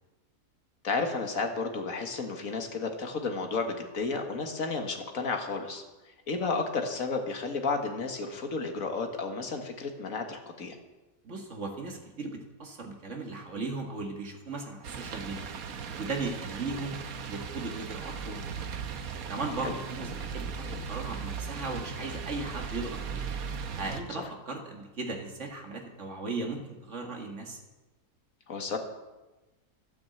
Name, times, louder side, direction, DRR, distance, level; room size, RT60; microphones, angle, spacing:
voice 1, 0.8-10.8 19.6-19.7 24.2-24.3 28.5-28.8, left 4 dB, 60° left, 4 dB, 2.0 m, -32 dB
voice 2, 11.2-15.5 16.0-17.0 17.3-18.8 19.3-23.3 23.8-27.6, right 3 dB, 50° right, 2 dB, 2.2 m, -37 dB
sound 1, 14.8-24.0, right 6 dB, 70° right, 1.4 m, -37 dB
12.5 x 9.3 x 7.8 m, 1.1 s
omnidirectional pair, 1.6 m